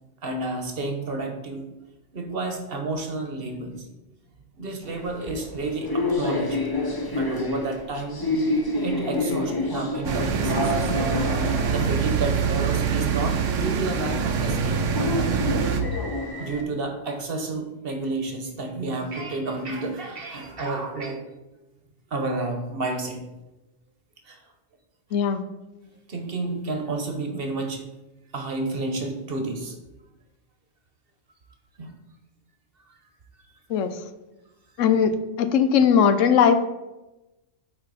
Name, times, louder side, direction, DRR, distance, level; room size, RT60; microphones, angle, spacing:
voice 1, 0.2-1.6 2.1-3.9 4.6-6.7 7.1-8.2 8.8-10.9 11.7-15.3 16.4-21.2 22.1-23.2 24.2-24.4 26.1-27.8 28.3-29.7 31.8-31.9 32.8-32.9 33.3-33.4, right 2 dB, 50° right, 4 dB, 1.1 m, -30 dB
sound 1, 4.8-16.6, left 2 dB, 25° left, 0.6 m, -29 dB
sound 2, 10.0-15.8, right 6 dB, 80° right, 1.1 m, -25 dB
voice 2, 34.8-36.7, left 7 dB, 90° left, 11 dB, 1.0 m, -19 dB
8.9 x 4.0 x 4.0 m, 1.0 s
omnidirectional pair, 1.3 m